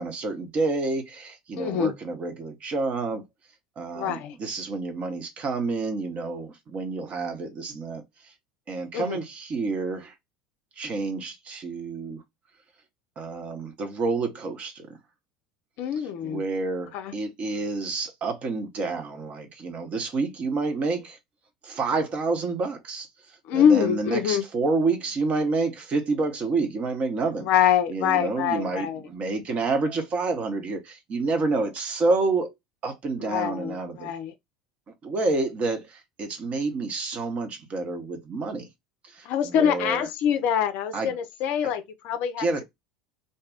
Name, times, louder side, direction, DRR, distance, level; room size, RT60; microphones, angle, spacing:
voice 1, 0.0-3.2 3.8-8.0 8.7-10.1 10.8-12.2 13.2-14.9 16.2-21.2 21.6-23.1 23.5-27.5 27.9-32.5 32.8-34.1 35.0-38.7 39.1-40.1 40.9-41.1 42.4-42.6, right 3 dB, 35° right, 0.9 m, -28 dB
voice 2, 1.6-1.9 4.0-4.4 8.9-9.2 15.8-16.4 16.9-17.1 23.5-24.5 27.4-29.0 33.2-34.3 39.3-42.5, left 9 dB, 50° left, 0.5 m, -24 dB
2.7 x 2.3 x 3.4 m
figure-of-eight pair, 70°, 4 cm